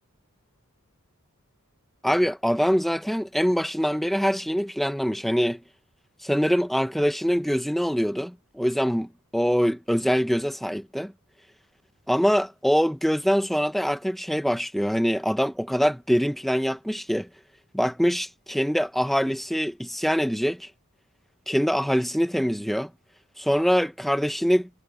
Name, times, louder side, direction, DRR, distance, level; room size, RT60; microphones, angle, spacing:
voice 1, 2.0-5.6 6.2-11.1 12.1-17.3 17.7-20.7 21.5-22.9 23.4-24.7, equal, ahead, 1.2 m, -24 dB
head